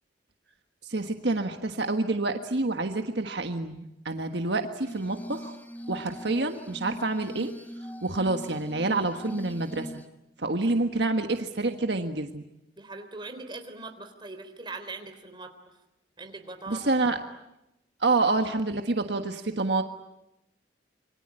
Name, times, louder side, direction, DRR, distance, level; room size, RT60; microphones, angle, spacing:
voice 1, 0.8-5.6 5.9-7.5 8.0-9.9 10.4-12.4 16.7-17.2 18.0-19.8, right 2 dB, 65° right, 6 dB, 1.5 m, -27 dB
Glass, 4.8-10.1, equal, 10° left, 1.3 m, -41 dB
voice 2, 10.4-10.7 12.8-15.8 16.2-17.1 18.3-18.4, right 3 dB, 25° right, 6 dB, 3.6 m, -41 dB
27.5 x 24.5 x 8.9 m, 0.90 s
head